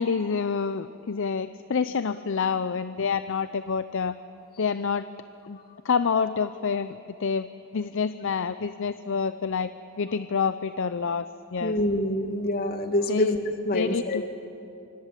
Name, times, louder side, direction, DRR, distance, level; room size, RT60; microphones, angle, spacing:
voice 1, 0.0-4.2 4.6-5.1 5.5-5.6 5.8-7.5 7.7-9.7 10.0-11.8 13.1-13.3 13.7-14.3, left 5 dB, 60° left, 12 dB, 0.6 m, -27 dB
voice 2, 11.6-14.2, left 1 dB, 45° left, 6 dB, 1.9 m, -26 dB
25.5 x 25.0 x 7.5 m, 2.8 s
head